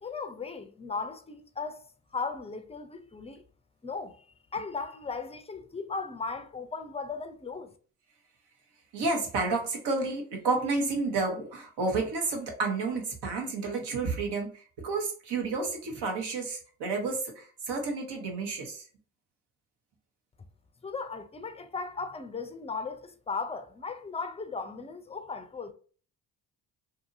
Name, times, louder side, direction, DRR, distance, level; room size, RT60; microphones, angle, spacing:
voice 1, 0.0-3.4 3.8-4.2 4.5-7.7 20.8-25.7, left 4 dB, 15° left, 0.4 m, -37 dB
voice 2, 8.9-18.8, right 3 dB, 75° right, 1.1 m, -31 dB
2.6 x 2.6 x 2.6 m
supercardioid pair, 55°, 42 cm